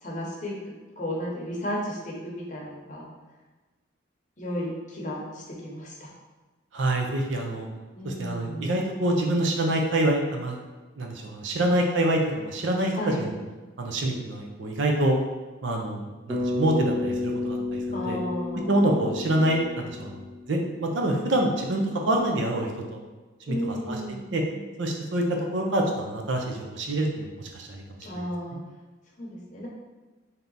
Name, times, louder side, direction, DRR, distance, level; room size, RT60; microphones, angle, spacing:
voice 1, 0.0-3.1 4.4-6.1 7.9-8.8 12.9-13.3 17.9-19.0 23.5-24.7 28.0-28.6 29.2-29.7, equal, 40° left, -3 dB, 0.8 m, -34 dB
voice 2, 6.7-7.7 8.0-10.6 11.0-12.9 13.2-13.3 13.8-15.2 15.6-18.2 18.7-23.0 23.5-24.0 24.3-24.4 24.8-25.2 25.5-27.8 28.5-28.6, right 1 dB, 70° right, 1 dB, 0.6 m, -26 dB
Bass guitar, 16.3-20.7, left 2 dB, 20° right, 0.5 m, -31 dB
3.4 x 2.8 x 3.9 m, 1.2 s
head